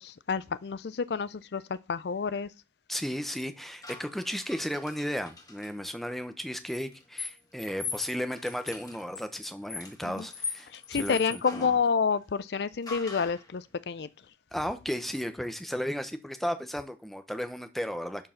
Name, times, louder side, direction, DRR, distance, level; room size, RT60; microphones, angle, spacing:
voice 1, 0.0-2.5 10.0-10.3 10.7-14.1, left 5 dB, 60° left, 0.4 m, -29 dB
voice 2, 2.9-11.7 14.5-18.3, equal, ahead, 0.9 m, -34 dB
sound 1, 3.8-5.7 6.7-11.8 12.9-13.5, left 4 dB, 20° left, 2.0 m, -40 dB
11.0 x 4.7 x 5.8 m
head